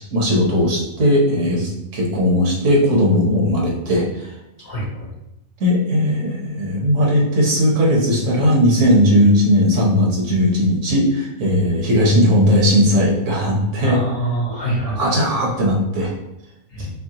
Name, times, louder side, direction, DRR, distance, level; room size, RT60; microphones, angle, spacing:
voice 1, 0.0-4.0 5.6-14.0 15.0-16.1, equal, 60° right, -2 dB, 1.2 m, -17 dB
voice 2, 4.6-5.1 13.8-15.2 16.7-16.9, right 2 dB, 65° left, -7 dB, 2.0 m, -25 dB
6.0 x 2.1 x 2.8 m, 0.87 s
omnidirectional pair, 1.5 m